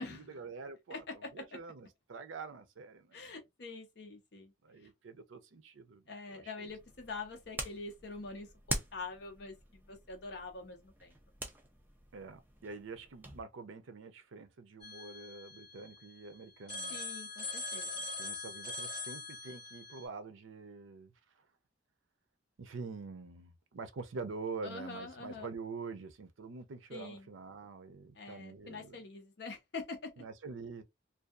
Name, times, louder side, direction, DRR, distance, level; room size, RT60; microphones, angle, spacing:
voice 1, 0.0-1.0 1.3-3.2 4.6-6.0 6.3-6.5 12.1-17.0 18.2-21.1 22.6-29.0 30.2-30.8, right 4 dB, 80° right, 0.5 m, -46 dB
voice 2, 0.9-1.6 3.1-4.5 4.8-4.9 6.1-11.1 16.9-17.9 24.6-25.5 26.9-27.3 28.1-30.2, left 3 dB, 55° left, 0.6 m, -45 dB
sound 1, 6.7-13.4, right 2 dB, 10° right, 0.3 m, -44 dB
Telephone, 14.8-16.2 16.7-20.1, left 3 dB, 25° left, 1.2 m, -42 dB
2.6 x 2.3 x 2.3 m
head